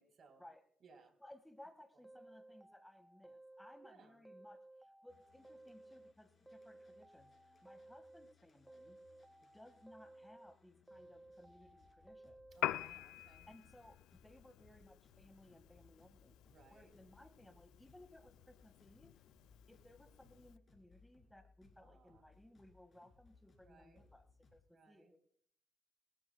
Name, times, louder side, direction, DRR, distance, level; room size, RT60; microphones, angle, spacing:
voice 1, 0.0-0.4 0.8-1.1 3.8-4.2 12.5-13.5 16.4-16.9 21.8-22.2 23.6-24.0 24.7-25.1, right 4 dB, 55° right, 7 dB, 3.8 m, -64 dB
voice 2, 1.2-9.0 9.4-12.4 13.5-16.4 16.7-19.2 19.7-25.2, left 1 dB, 5° left, 10 dB, 1.7 m, -61 dB
sound 1, 2.0-3.9 4.2-6.1 6.5-8.3 8.7-10.5 10.9-12.8, right 1 dB, 10° right, 0.5 m, -59 dB
sound 2, 5.1-24.6, left 4 dB, 45° left, 5.0 m, -69 dB
Piano, 12.5-20.6, left 14 dB, 75° left, 0.4 m, -47 dB
22.0 x 14.0 x 2.2 m, 0.62 s
hypercardioid pair, 50°, 0 cm